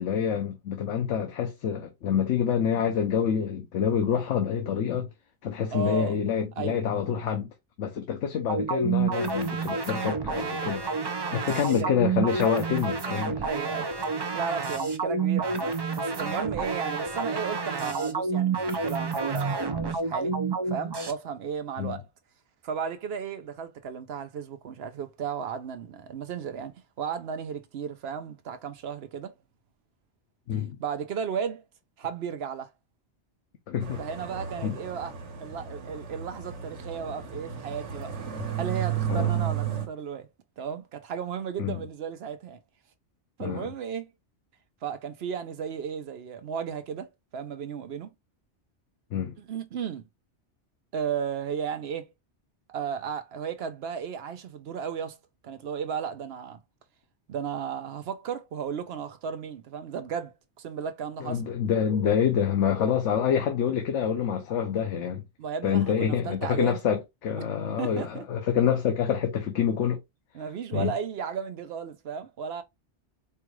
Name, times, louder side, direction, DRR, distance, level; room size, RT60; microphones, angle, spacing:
voice 1, 0.0-5.1 5.4-7.5 7.8-10.8 11.3-13.4 21.8-22.0 30.5-30.8 33.7-34.0 34.6-34.8 39.1-39.4 41.6-41.8 43.4-43.7 49.1-49.3 61.2-65.2 65.6-70.0 70.7-70.9, left 8 dB, 80° left, 1.0 m, -27 dB
voice 2, 5.7-6.2 6.6-6.8 11.3-11.9 13.4-13.9 14.3-20.4 20.7-22.1 22.6-29.3 30.8-31.6 32.0-32.7 34.0-38.1 38.6-40.3 40.6-42.6 43.4-44.1 44.8-48.1 49.4-50.1 50.9-52.1 52.7-55.2 55.4-56.6 57.3-61.4 65.4-66.8 67.8-68.2 70.3-72.6, right 7 dB, 65° right, 0.9 m, -34 dB
sound 1, 8.5-21.1, right 4 dB, 40° right, 0.3 m, -29 dB
sound 2, 33.8-39.9, right 9 dB, 85° right, 1.3 m, -33 dB
4.5 x 2.3 x 3.1 m
omnidirectional pair, 1.2 m